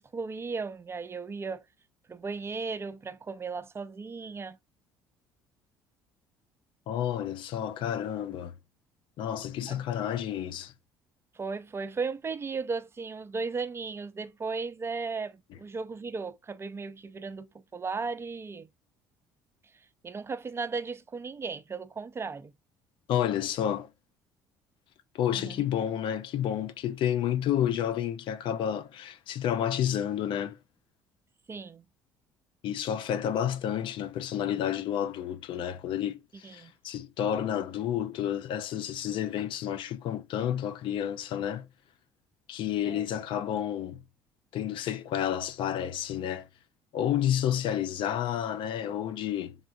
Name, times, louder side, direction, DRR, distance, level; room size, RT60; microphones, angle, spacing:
voice 1, 0.0-1.7 2.1-4.6 9.7-9.8 11.3-18.7 19.7-22.5 25.3-25.5 31.5-31.8 36.4-36.7 42.9-43.1, right 4 dB, 25° right, 0.5 m, -36 dB
voice 2, 6.9-8.5 9.2-10.7 23.1-23.9 25.1-30.6 32.6-41.7 42.5-44.0 44.5-46.5 46.9-49.6, left 10 dB, 65° left, 0.5 m, -30 dB
3.6 x 3.4 x 2.6 m
supercardioid pair, 75°, 9 cm